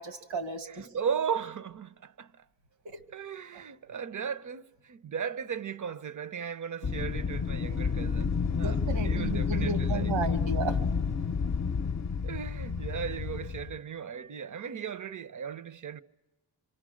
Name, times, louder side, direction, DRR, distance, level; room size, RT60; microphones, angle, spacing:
voice 1, 0.0-0.9 2.8-3.0 8.5-10.8, right 4 dB, 90° right, 1.7 m, -34 dB
voice 2, 0.7-2.4 3.1-10.4 12.2-16.0, right 7 dB, 45° right, 0.7 m, -37 dB
Wind, 6.8-13.8, left 5 dB, 40° left, 0.7 m, -30 dB
26.5 x 25.0 x 6.3 m
cardioid pair, 65°, 44 cm